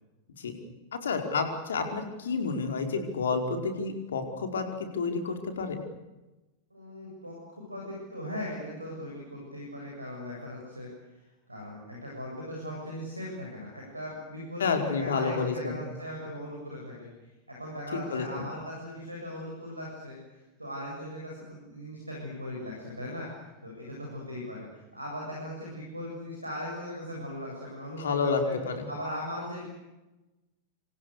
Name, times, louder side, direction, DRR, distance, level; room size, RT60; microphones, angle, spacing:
voice 1, 0.9-4.6 4.9-5.8 14.6-15.8 17.9-18.4 28.0-28.9, left 4 dB, 65° left, 5 dB, 5.0 m, -30 dB
voice 2, 6.7-28.5 28.9-29.7, left 1 dB, 85° right, -1 dB, 7.7 m, -39 dB
28.0 x 27.5 x 6.8 m, 1.1 s
figure-of-eight pair, 90°, 0 cm